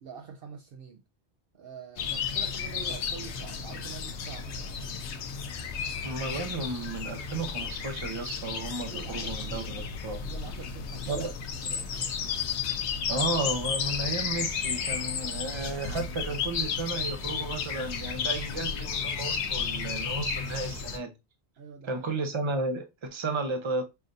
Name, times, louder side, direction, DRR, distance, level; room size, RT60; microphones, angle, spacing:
voice 1, 0.0-1.0 1.5-4.8 8.8-9.7 10.3-11.3 11.6-12.1 21.6-22.1, right 6 dB, 65° right, 0.7 m, -45 dB
sound 1, 2.0-21.0, left 6 dB, 80° left, 0.9 m, -33 dB
voice 2, 6.0-10.2 11.1-11.3 13.1-21.1 21.9-23.8, right 3 dB, 30° right, 0.6 m, -33 dB
5.7 x 2.5 x 2.6 m
omnidirectional pair, 1.2 m